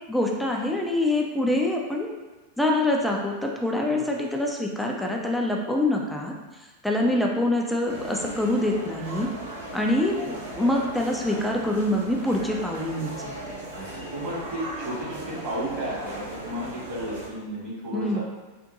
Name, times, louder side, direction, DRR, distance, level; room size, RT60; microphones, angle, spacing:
voice 1, 0.1-2.1 2.6-6.3 6.8-9.3 9.7-13.3 17.9-18.2, left 1 dB, ahead, 0 dB, 0.3 m, -25 dB
sound 1, 7.9-17.3, right 2 dB, 60° right, 0.7 m, -37 dB
voice 2, 13.7-18.2, equal, 40° right, -6 dB, 1.4 m, -34 dB
3.6 x 2.5 x 2.6 m, 1.2 s
figure-of-eight pair, 90°, 0 cm